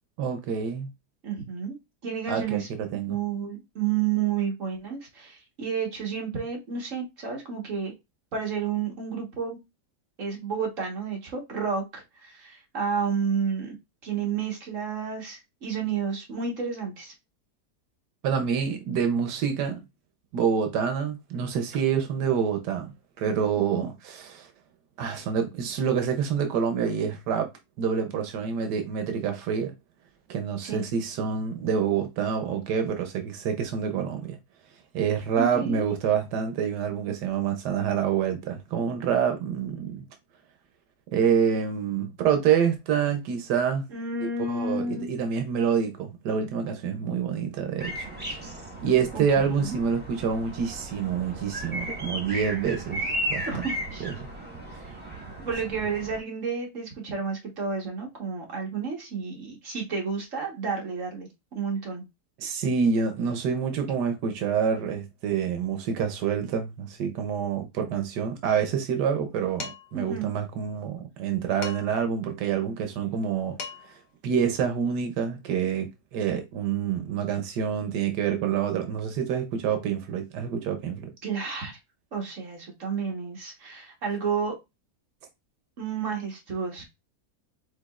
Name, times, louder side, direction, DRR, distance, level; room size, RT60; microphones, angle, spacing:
voice 1, 0.2-0.9 2.3-3.2 18.2-19.8 20.3-22.9 23.2-24.5 25.0-27.5 27.8-29.7 30.3-34.4 34.9-40.0 41.1-43.8 44.2-48.1 48.8-53.5 54.0-54.3 62.4-73.6 73.8-73.9 74.2-81.1, right 7 dB, 85° right, 1.3 m, -27 dB
voice 2, 1.2-1.8 2.0-2.7 3.1-7.9 8.3-9.6 10.2-13.7 14.0-17.1 23.7-23.9 30.6-30.8 35.4-35.9 43.9-45.1 49.1-49.8 53.5-54.1 54.7-55.0 55.4-62.0 69.9-70.3 81.2-81.8 82.1-84.6 85.8-86.8, right 6 dB, 50° right, 1.7 m, -31 dB
sound 1, 47.8-56.2, equal, 5° right, 1.2 m, -35 dB
Dishes pots and pans, 69.6-70.0 71.6-72.1 73.3-73.4 73.6-74.1, left 5 dB, 80° left, 1.6 m, -38 dB
5.1 x 4.0 x 2.4 m
omnidirectional pair, 1.7 m